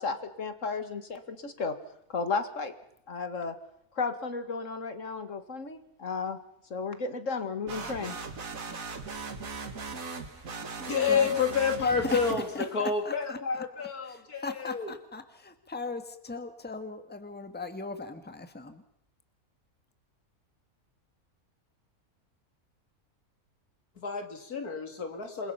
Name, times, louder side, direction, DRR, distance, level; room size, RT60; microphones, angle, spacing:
voice 1, 0.0-1.8 2.1-2.7 3.1-3.5 3.9-6.4 6.7-8.2, left 4 dB, 60° left, 9 dB, 2.3 m, -33 dB
sound 1, 7.7-12.9, right 4 dB, 65° right, 2.3 m, -39 dB
voice 2, 10.8-14.9 24.0-25.5, left 5 dB, 90° left, 5 dB, 3.1 m, -29 dB
voice 3, 11.8-12.2 12.5-18.8, left 3 dB, 5° left, 8 dB, 1.5 m, -39 dB
28.0 x 22.5 x 5.8 m, 0.75 s
omnidirectional pair, 1.5 m